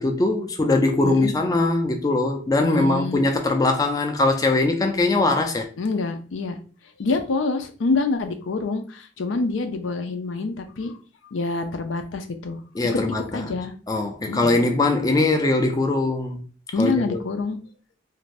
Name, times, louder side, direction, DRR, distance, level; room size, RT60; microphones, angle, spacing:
voice 1, 0.0-5.7 12.7-13.4 13.9-16.4 16.8-17.2, left 2 dB, 20° left, 0.4 m, -21 dB
voice 2, 2.6-3.2 5.8-6.6 7.0-10.9 11.3-12.6 13.3-13.7 14.3-14.7 16.7-17.6, left 3 dB, 85° left, 0.5 m, -26 dB
2.5 x 2.5 x 3.2 m
head